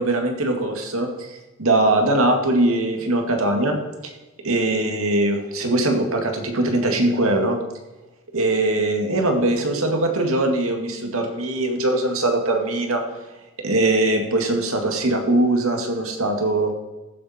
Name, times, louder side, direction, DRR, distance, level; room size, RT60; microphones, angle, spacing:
voice 1, 0.0-3.8 4.0-4.1 4.4-7.6 8.3-13.0 13.6-16.7, right 2 dB, 80° right, 4 dB, 2.1 m, -21 dB
15.0 x 8.7 x 4.3 m, 1.1 s
head